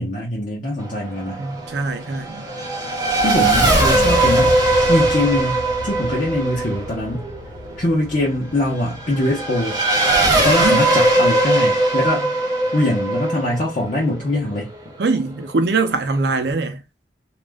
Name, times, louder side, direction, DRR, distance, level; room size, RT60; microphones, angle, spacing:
voice 1, 0.0-1.4 3.2-4.6 4.9-7.3 7.8-9.8 10.4-12.3 12.7-14.7, left 1 dB, 45° left, 0.7 m, -22 dB
Race car auto racing / Accelerating revving vroom, 0.8-14.9, right 2 dB, 20° right, 0.7 m, -20 dB
voice 2, 1.4-2.5 10.6-10.9 15.0-16.8, right 3 dB, 65° right, 0.5 m, -22 dB
sound 1, 3.8-11.7 12.1-12.2, equal, 70° left, 0.9 m, -33 dB
2.4 x 2.1 x 3.4 m
head